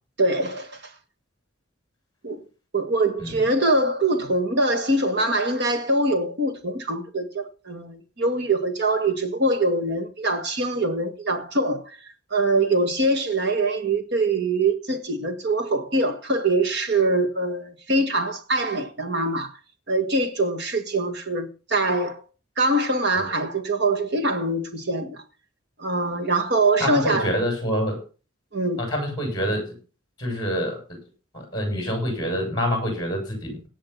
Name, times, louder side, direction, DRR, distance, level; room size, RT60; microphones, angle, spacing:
voice 1, 0.2-0.8 2.2-2.4 2.7-11.8 12.3-19.5 19.9-22.2 22.6-25.2 25.8-27.3 28.5-28.9, right 2 dB, 55° right, 1.8 m, -23 dB
voice 2, 26.8-28.0 28.8-29.8 30.2-30.8 31.3-33.6, equal, 20° left, 7.5 m, -26 dB
17.5 x 7.6 x 5.8 m
head